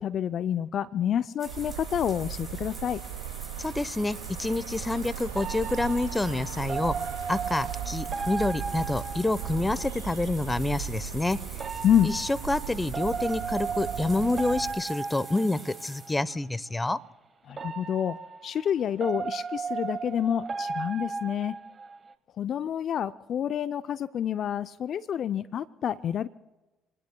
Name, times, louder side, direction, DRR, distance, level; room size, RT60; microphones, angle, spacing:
voice 1, 0.0-3.0 11.8-12.1 17.5-18.2 18.4-21.6 22.4-26.3, left 9 dB, 55° left, 13 dB, 0.5 m, -28 dB
sound 1, 1.4-16.3, right 2 dB, 15° right, 6.2 m, -46 dB
sound 2, 1.5-14.7, right 9 dB, 85° right, 2.2 m, -37 dB
voice 2, 3.6-6.9 7.3-11.4 12.0-17.0, left 2 dB, 15° left, 16 dB, 0.9 m, -28 dB
sound 3, 5.4-10.0 11.5-16.2 17.5-22.1, right 5 dB, 40° right, 1.5 m, -35 dB
28.0 x 19.5 x 2.3 m, 1.1 s
hypercardioid pair, 55°, 0 cm